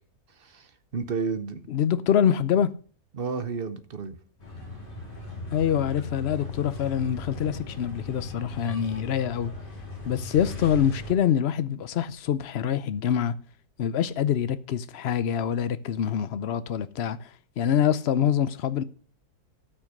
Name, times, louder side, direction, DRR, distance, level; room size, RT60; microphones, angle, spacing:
voice 1, 0.4-1.7 3.1-4.2, right 5 dB, 45° right, 0.9 m, -32 dB
voice 2, 1.7-2.7 5.5-9.5 10.1-13.3 13.8-18.8, left 9 dB, 55° left, 0.8 m, -25 dB
sound 1, 4.4-11.1, left 3 dB, 35° left, 3.2 m, -38 dB
13.0 x 6.1 x 6.6 m
omnidirectional pair, 1.6 m